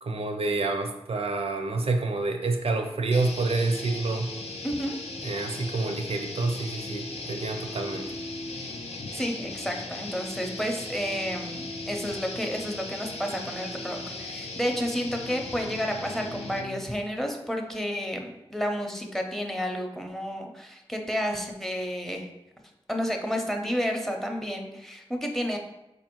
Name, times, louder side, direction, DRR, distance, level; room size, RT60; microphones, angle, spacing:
voice 1, 0.0-4.3 5.2-8.1, right 3 dB, 70° right, 4 dB, 0.5 m, -28 dB
sound 1, 3.1-16.8, left 2 dB, 85° left, 0.4 m, -37 dB
voice 2, 4.6-5.0 9.1-22.3 22.9-25.6, equal, 5° left, 3 dB, 0.6 m, -31 dB
3.8 x 2.5 x 2.9 m, 0.94 s
cardioid pair, 45°, 10 cm